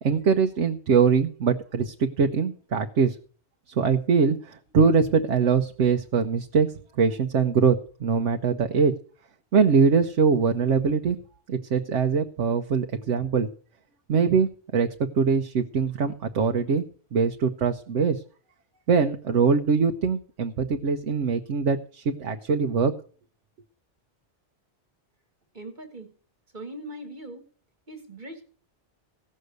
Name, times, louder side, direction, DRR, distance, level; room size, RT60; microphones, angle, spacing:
voice 1, 0.0-3.1 3.8-6.7 7.0-8.9 9.5-11.2 11.5-13.5 14.1-14.9 15.2-16.8 17.1-18.2 18.9-22.9, right 5 dB, 85° right, 5 dB, 1.2 m, -22 dB
voice 2, 25.5-26.1 26.5-27.4 27.9-28.4, right 1 dB, 40° right, 6 dB, 1.7 m, -40 dB
16.0 x 6.5 x 8.1 m, 0.43 s
omnidirectional pair, 1.2 m